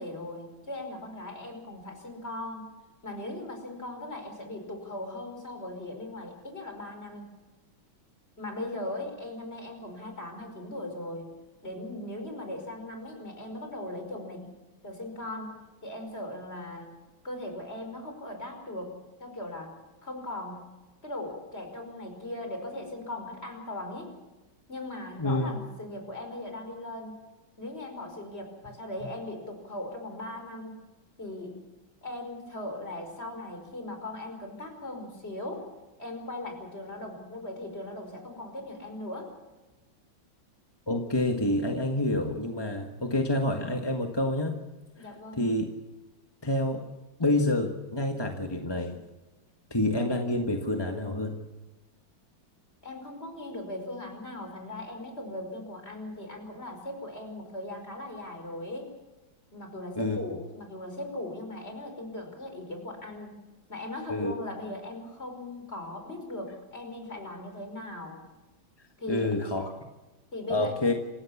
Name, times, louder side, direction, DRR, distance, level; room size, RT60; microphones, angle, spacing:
voice 1, 0.0-2.7 3.0-7.3 8.4-11.3 11.6-14.5 14.8-15.5 15.8-16.9 17.2-19.7 20.0-20.6 21.0-24.1 24.7-27.2 27.6-30.8 31.2-31.6 32.0-35.7 36.0-39.3 45.0-45.5 52.8-58.9 59.5-63.4 63.7-68.2 69.0-69.3 70.3-70.8, left 1 dB, 30° left, 4 dB, 5.5 m, -39 dB
voice 2, 25.2-25.5 40.9-44.6 45.0-45.1 45.4-45.7 46.4-46.8 47.2-49.0 49.7-51.4 59.9-60.4 64.1-64.3 69.1-69.8 70.5-71.0, left 1 dB, 15° left, 3 dB, 1.3 m, -28 dB
27.0 x 16.0 x 7.1 m, 1.1 s
omnidirectional pair, 2.1 m